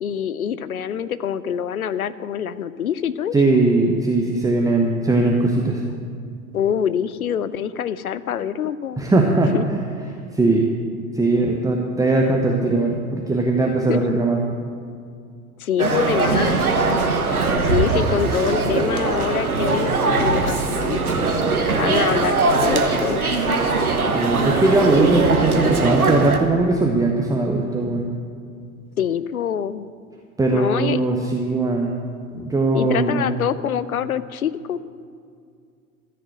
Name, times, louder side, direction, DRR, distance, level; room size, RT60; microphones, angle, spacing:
voice 1, 0.0-3.3 6.5-9.0 9.5-9.6 13.9-14.1 15.6-16.6 17.6-21.0 21.7-23.4 29.0-29.8 30.5-31.0 32.7-34.8, left 8 dB, 80° left, 16 dB, 0.6 m, -25 dB
voice 2, 3.3-5.8 9.0-9.8 10.3-10.6 11.1-14.4 24.1-28.0 30.4-31.9 32.3-33.3, right 2 dB, 10° right, 0 dB, 1.0 m, -19 dB
sound 1, 15.8-26.4, right 3 dB, 85° right, 1.2 m, -20 dB
14.0 x 6.8 x 7.8 m, 2.3 s
figure-of-eight pair, 80°, 43 cm